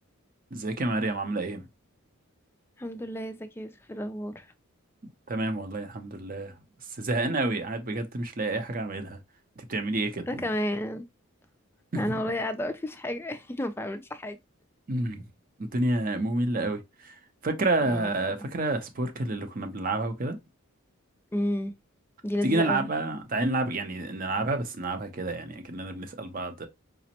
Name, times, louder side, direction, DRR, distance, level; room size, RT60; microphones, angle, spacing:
voice 1, 0.5-1.7 5.3-6.6 6.9-9.2 9.6-10.4 11.9-12.2 14.9-15.2 15.6-20.4 22.4-26.7, right 2 dB, 40° right, 0.6 m, -29 dB
voice 2, 2.8-4.5 10.3-11.1 12.0-14.4 17.8-18.1 21.3-21.7 22.2-22.8, left 1 dB, 10° left, 0.3 m, -31 dB
5.0 x 2.0 x 2.8 m
head